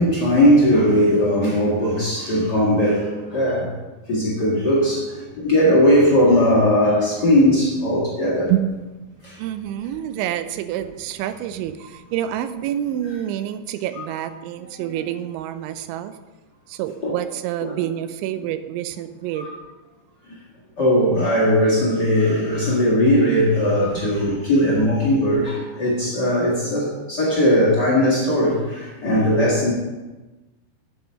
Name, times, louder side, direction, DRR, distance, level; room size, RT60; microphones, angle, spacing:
voice 1, 0.0-3.7 4.1-8.5 9.2-9.3 14.0-14.1 17.0-17.1 17.6-17.7 19.4-19.5 20.8-29.7, equal, 65° left, -5 dB, 1.0 m, -18 dB
voice 2, 8.5-8.9 9.4-16.1 16.7-19.5 24.0-24.1, right 11 dB, 90° right, 10 dB, 3.0 m, -27 dB
8.6 x 7.9 x 5.6 m, 1.2 s
omnidirectional pair, 5.2 m